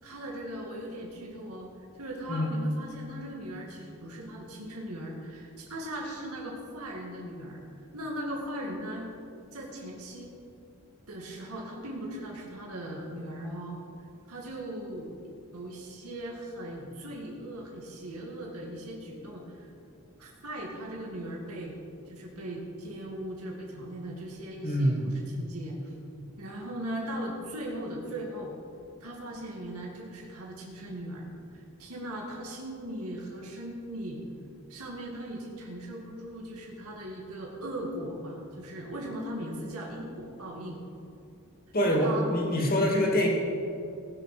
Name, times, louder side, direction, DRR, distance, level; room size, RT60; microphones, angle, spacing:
voice 1, 0.0-7.6 7.9-9.1 9.5-10.3 11.1-13.8 14.3-15.2 15.5-19.7 20.2-21.8 22.1-25.9 26.4-28.5 29.0-31.3 31.5-34.2 34.7-40.8 41.8-42.3, right 1 dB, 90° right, -2 dB, 2.2 m, -39 dB
voice 2, 24.6-25.1 41.7-43.3, equal, 40° left, 0 dB, 2.3 m, -25 dB
19.5 x 6.5 x 6.1 m, 2.6 s
head